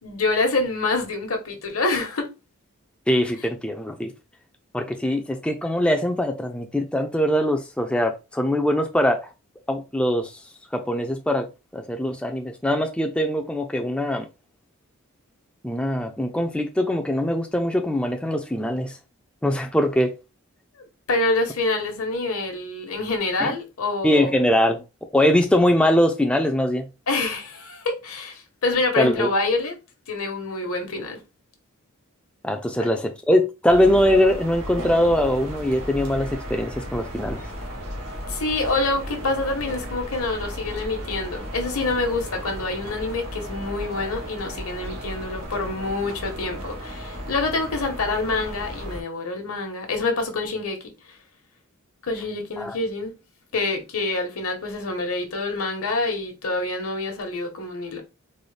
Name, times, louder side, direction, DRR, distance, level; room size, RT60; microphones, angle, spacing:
voice 1, 0.0-2.3 21.1-24.4 27.1-29.7 30.1-31.2 38.3-50.9 52.0-53.1 53.5-58.0, left 3 dB, 75° left, 1.0 m, -26 dB
voice 2, 3.1-4.1 4.7-9.2 9.7-10.3 10.7-11.5 11.7-14.3 15.6-19.0 19.4-20.1 23.4-23.5 24.0-24.8 25.1-26.8 29.0-29.3 32.4-37.4 52.6-52.8, left 1 dB, 5° left, 0.4 m, -22 dB
sound 1, 33.7-49.0, equal, 90° right, 1.2 m, -35 dB
3.9 x 2.1 x 3.2 m
head